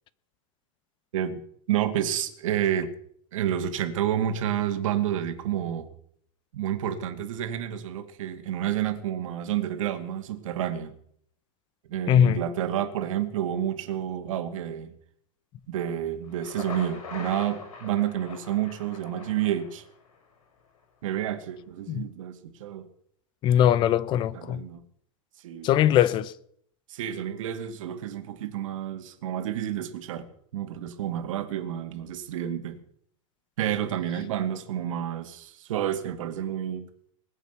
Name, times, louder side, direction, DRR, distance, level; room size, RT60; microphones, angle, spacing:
voice 1, 1.7-2.9 3.3-5.9 6.5-10.9 11.9-14.9 15.7-19.8 21.0-22.9 24.3-24.8 25.4-25.7 26.9-30.3 30.5-32.8 33.6-36.9, right 10 dB, 70° right, 2.3 m, -29 dB
voice 2, 12.1-12.4 21.9-22.1 23.4-24.6 25.6-26.3, left 10 dB, 30° left, 0.6 m, -21 dB
Thunder, 16.2-20.2, left 5 dB, 85° left, 6.0 m, -42 dB
20.5 x 8.1 x 8.2 m
supercardioid pair, 150°, 17 cm